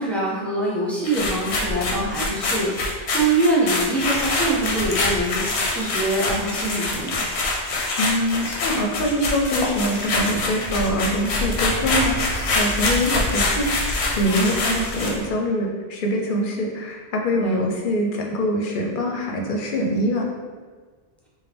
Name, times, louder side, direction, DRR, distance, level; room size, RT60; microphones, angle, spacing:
voice 1, 0.0-7.2 14.2-15.1 17.3-17.6, right 2 dB, ahead, -6 dB, 0.5 m, -24 dB
sound 1, 1.0-15.2, left 2 dB, 90° left, 0.9 m, -25 dB
voice 2, 8.0-20.3, equal, 60° left, 1 dB, 0.7 m, -24 dB
3.6 x 2.5 x 3.3 m, 1.5 s
omnidirectional pair, 1.1 m